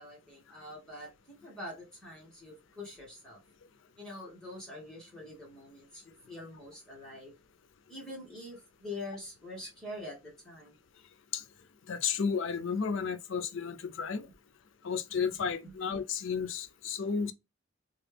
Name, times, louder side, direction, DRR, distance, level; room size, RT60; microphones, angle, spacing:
voice 1, 0.0-3.4 3.9-7.3 7.9-10.8 15.6-15.7, left 1 dB, 5° left, 1.2 m, -45 dB
voice 2, 11.9-14.3 14.8-17.3, left 6 dB, 60° left, 0.4 m, -32 dB
3.0 x 2.3 x 3.2 m
head